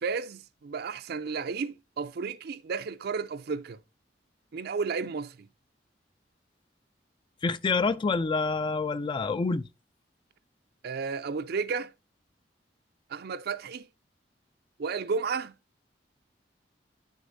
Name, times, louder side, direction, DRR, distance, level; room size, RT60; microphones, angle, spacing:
voice 1, 0.0-3.8 4.5-5.5 10.8-11.9 13.1-13.9 14.8-15.6, right 5 dB, 60° right, 0.4 m, -33 dB
voice 2, 7.4-9.6, left 4 dB, 25° left, 0.3 m, -27 dB
9.3 x 6.4 x 2.6 m
head